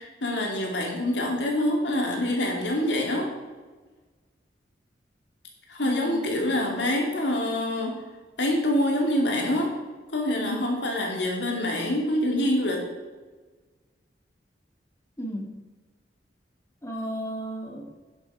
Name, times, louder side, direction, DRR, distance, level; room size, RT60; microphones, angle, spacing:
voice 1, 0.0-3.3 5.7-8.0 8.4-9.7 10.1-12.8, left 1 dB, 70° left, 0 dB, 2.7 m, -26 dB
voice 2, 5.8-6.5 10.4-10.6 15.2-15.5 16.8-17.9, equal, 15° left, 1 dB, 1.8 m, -35 dB
10.5 x 7.4 x 5.1 m, 1.3 s
head